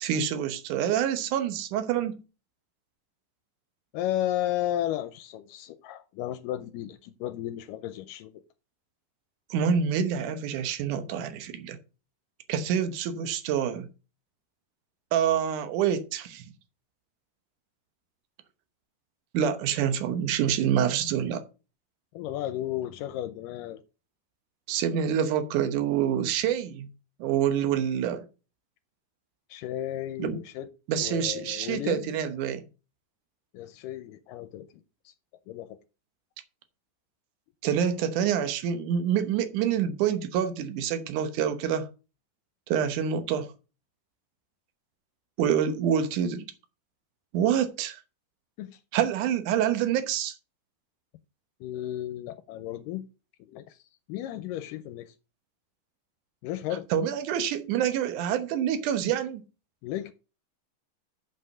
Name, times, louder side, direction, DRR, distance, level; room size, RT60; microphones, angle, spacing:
voice 1, 0.0-2.2 9.5-11.8 12.5-13.9 15.1-16.4 19.3-21.4 24.7-26.9 27.2-28.2 30.2-30.4 30.9-32.6 37.6-41.9 42.7-43.5 45.4-46.5 47.3-48.0 48.9-50.3 56.9-59.4, right 8 dB, 70° right, 2.4 m, -27 dB
voice 2, 3.9-8.4 22.1-23.8 29.5-30.7 31.0-32.1 33.5-34.7 35.1-35.2 35.5-35.8 48.6-48.8 51.6-53.1 53.4-53.8 54.1-55.1 56.4-56.9 59.8-60.1, left 12 dB, 85° left, 2.2 m, -34 dB
7.6 x 5.6 x 6.8 m
omnidirectional pair, 3.9 m